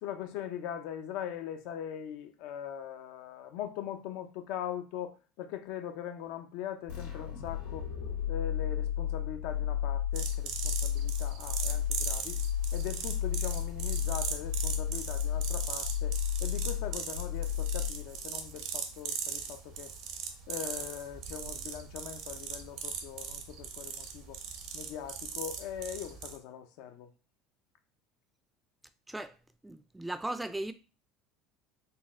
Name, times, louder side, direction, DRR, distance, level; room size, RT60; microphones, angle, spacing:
voice 1, 0.0-7.9 8.3-12.4 12.7-19.9 20.5-24.4 24.7-27.1, left 9 dB, 70° left, 0.5 m, -41 dB
sound 1, 6.9-18.3, left 9 dB, 90° left, 1.7 m, -33 dB
sound 2, 10.1-26.4, right 6 dB, 65° right, 0.7 m, -39 dB
voice 2, 29.6-30.7, right 1 dB, 10° right, 0.4 m, -37 dB
4.1 x 2.1 x 3.5 m
supercardioid pair, 100°, 0 cm